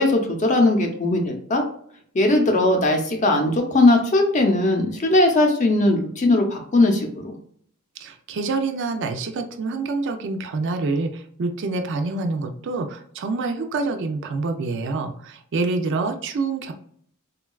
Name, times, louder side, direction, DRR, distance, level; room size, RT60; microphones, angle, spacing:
voice 1, 0.0-1.6 2.1-7.4, left 2 dB, 35° left, 3 dB, 0.5 m, -19 dB
voice 2, 8.0-16.7, right 3 dB, 55° right, 6 dB, 0.4 m, -26 dB
3.7 x 2.2 x 2.2 m, 0.62 s
head